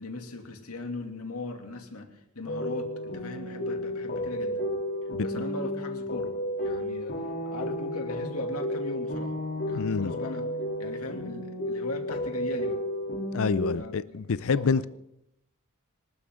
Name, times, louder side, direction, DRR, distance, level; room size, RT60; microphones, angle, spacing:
voice 1, 0.0-4.6 5.2-6.3 6.6-7.2 7.5-9.3 9.6-10.5 10.8-12.8 13.7-14.9, left 2 dB, 80° left, 2.6 m, -39 dB
sound 1, 2.5-13.7, equal, 50° left, 2.9 m, -32 dB
voice 2, 9.7-10.1 13.3-14.8, left 5 dB, 65° left, 0.5 m, -27 dB
26.0 x 13.0 x 3.7 m
head